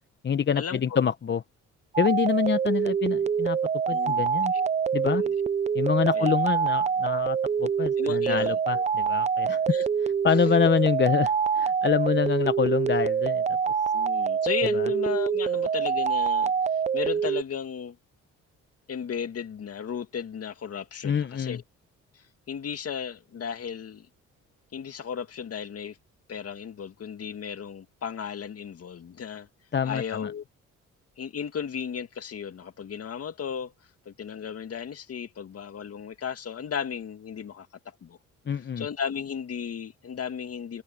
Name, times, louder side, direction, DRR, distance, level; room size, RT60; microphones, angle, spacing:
voice 1, 0.2-1.4 2.0-3.6 3.9-4.5 4.9-5.2 5.7-9.6 10.2-13.6 14.7-14.9 21.0-21.6 29.7-30.3 38.5-38.9, left 7 dB, 35° left, 1.0 m, -26 dB
sound 1, 1.9-17.4, right 6 dB, 25° right, 0.4 m, -25 dB
voice 2, 3.9-4.2 4.5-4.7 5.0-5.3 6.1-6.3 8.0-8.9 9.7-9.8 13.9-18.0 18.9-21.6 22.1-24.1 24.7-26.0 26.3-29.5 29.8-30.4 31.2-33.7 34.1-38.2 38.6-40.8, left 7 dB, 55° left, 2.2 m, -35 dB
cardioid pair, 90°, 30 cm